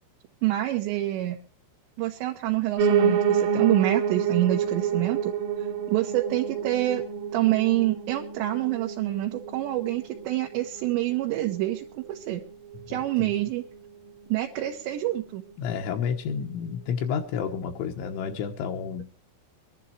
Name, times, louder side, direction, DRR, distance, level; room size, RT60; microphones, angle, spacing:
voice 1, 0.4-1.4 2.0-5.3 5.9-7.0 7.3-12.4 12.9-13.6 14.3-15.4, right 15 dB, 75° right, 0 dB, 3.2 m, -26 dB
Piano, 2.8-11.9 12.3-13.5 13.7-13.8 14.1-14.2 14.4-14.5 15.0-15.1, right 7 dB, 60° right, 2.7 m, -28 dB
voice 2, 12.9-13.3 15.6-19.1, left 7 dB, 80° left, 2 dB, 3.5 m, -30 dB
24.0 x 11.5 x 3.0 m, 0.36 s
omnidirectional pair, 5.5 m